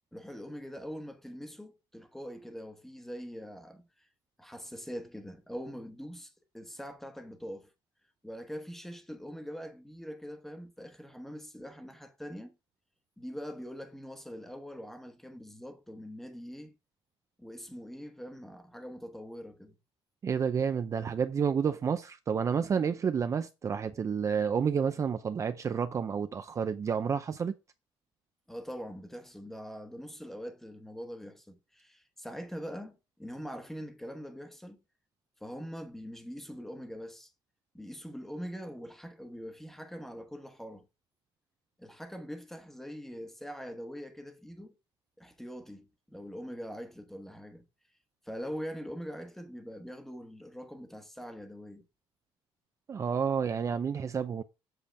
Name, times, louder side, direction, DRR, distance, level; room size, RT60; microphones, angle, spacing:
voice 1, 0.1-4.1 4.4-7.7 8.2-12.5 13.2-16.8 17.4-19.8 28.5-34.8 35.4-37.3 37.7-40.8 41.8-44.8 45.2-47.7 48.2-51.9, equal, 5° left, 1.1 m, -43 dB
voice 2, 20.2-27.5 52.9-54.4, right 6 dB, 30° right, 0.5 m, -30 dB
7.6 x 6.8 x 3.4 m
cardioid pair, 135°, 10 cm